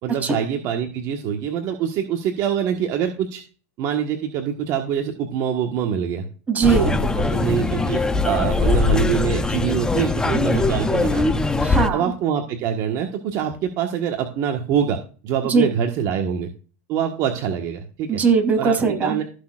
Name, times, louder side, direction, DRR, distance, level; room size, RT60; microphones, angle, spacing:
voice 1, 0.0-3.4 3.8-6.3 6.8-6.9 7.3-11.4 11.9-15.0 15.2-16.5 16.9-18.2 18.6-18.7 19.0-19.2, right 8 dB, 45° right, 3 dB, 1.5 m, -24 dB
voice 2, 6.5-7.0 11.6-12.0 15.4-15.7 18.1-19.2, right 5 dB, 20° right, 3 dB, 3.3 m, -20 dB
sound 1, 6.6-11.9, left 3 dB, 10° left, 0.7 m, -21 dB
16.0 x 6.6 x 2.5 m, 0.38 s
supercardioid pair, 125°, 8 cm